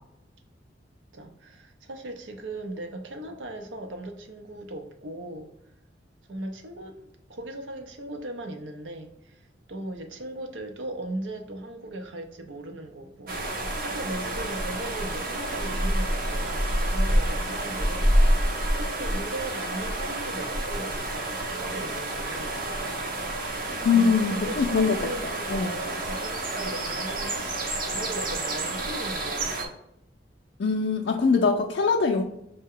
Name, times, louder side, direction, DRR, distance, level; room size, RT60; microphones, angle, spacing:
voice 1, 1.1-5.5 6.3-23.6 23.9-27.7 27.9-29.7, right 1 dB, 85° right, 0.6 m, -38 dB
sound 1, 13.3-29.7, right 1 dB, 50° right, 0.7 m, -28 dB
voice 2, 23.8-25.0 25.5-25.8 30.6-32.2, left 5 dB, 60° left, 0.4 m, -22 dB
5.5 x 2.1 x 3.6 m
head